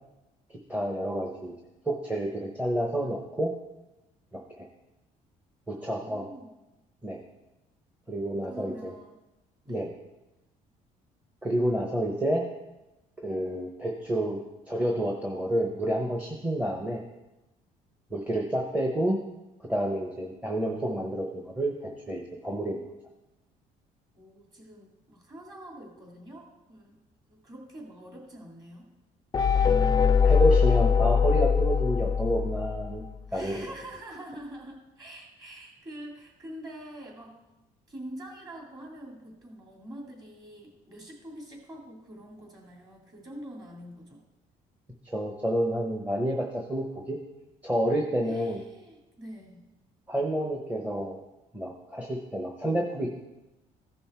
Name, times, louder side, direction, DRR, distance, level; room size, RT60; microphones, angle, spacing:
voice 1, 0.7-1.5 1.9-3.5 4.3-4.7 5.7-6.3 7.0-7.2 8.1-8.9 9.7-9.9 11.4-12.5 13.2-17.0 18.1-19.2 19.6-22.8 30.2-33.0 33.3-33.7 45.0-47.2 47.6-48.6 50.1-51.2 51.5-53.1, right 1 dB, 10° right, 0 dB, 0.9 m, -29 dB
voice 2, 5.8-6.5 8.4-9.1 9.6-9.9 24.1-27.0 27.3-28.9 33.3-37.4 37.9-44.2 48.2-49.6, right 1 dB, 25° right, -1 dB, 2.8 m, -45 dB
sound 1, 29.3-33.1, left 6 dB, 25° left, 0.4 m, -22 dB
15.0 x 5.5 x 4.4 m, 0.99 s
cardioid pair, 135°, 15 cm